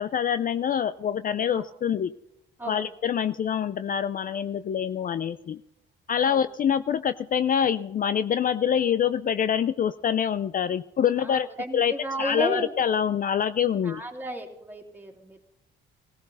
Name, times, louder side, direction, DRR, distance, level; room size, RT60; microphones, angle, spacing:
voice 1, 0.0-2.1 2.7-5.6 6.1-11.5 11.7-11.9 12.2-14.0, left 8 dB, 45° left, 14 dB, 0.4 m, -25 dB
voice 2, 2.6-2.9 6.2-6.4 11.2-12.7 13.8-15.5, right 1 dB, 10° right, 1 dB, 2.9 m, -34 dB
17.0 x 15.5 x 4.0 m, 0.87 s
cardioid pair, 90°, 20 cm